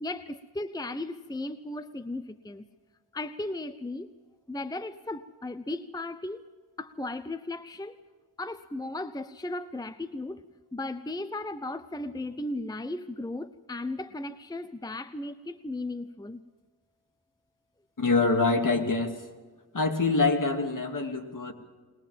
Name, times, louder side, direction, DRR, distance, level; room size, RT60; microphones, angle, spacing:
voice 1, 0.0-2.7 3.1-4.1 4.5-6.4 6.8-8.0 8.4-10.4 10.7-16.4, left 2 dB, 10° left, 12 dB, 0.7 m, -36 dB
voice 2, 18.0-19.2 19.7-21.5, left 3 dB, 50° left, 3 dB, 2.8 m, -25 dB
22.0 x 20.5 x 7.4 m, 1.4 s
wide cardioid pair, 85°, 40 cm